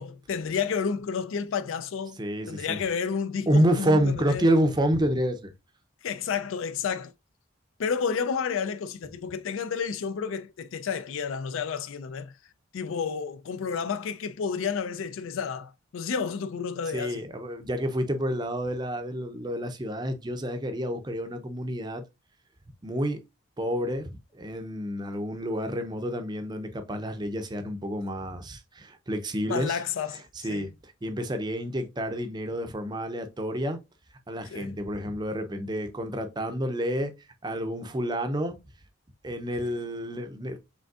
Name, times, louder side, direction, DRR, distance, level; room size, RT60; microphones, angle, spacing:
voice 1, 0.0-2.2 2.5-4.4 6.0-7.1 7.8-12.3 12.7-17.2 29.5-30.2 30.5-30.7 34.5-34.7, left 6 dB, 75° left, 0.4 m, -31 dB
voice 2, 2.2-2.8 3.5-5.5 16.9-22.0 22.8-23.2 23.6-29.8 30.3-33.8 34.3-37.1 37.4-38.6 39.2-40.6, equal, 20° right, 0.5 m, -29 dB
5.2 x 3.3 x 2.4 m
head